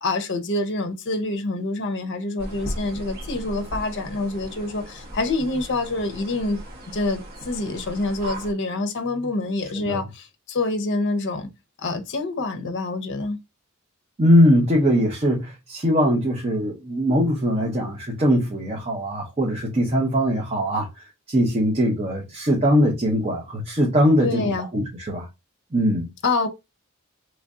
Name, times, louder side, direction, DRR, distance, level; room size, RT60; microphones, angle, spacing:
voice 1, 0.0-6.6 6.9-11.5 11.8-13.4 24.2-24.7 26.2-26.5, left 2 dB, 55° left, 0.7 m, -26 dB
sound 1, 2.4-8.5, equal, 45° right, 1.1 m, -37 dB
voice 2, 14.2-25.3 25.7-26.1, equal, 30° right, 0.7 m, -21 dB
3.2 x 2.5 x 3.5 m
head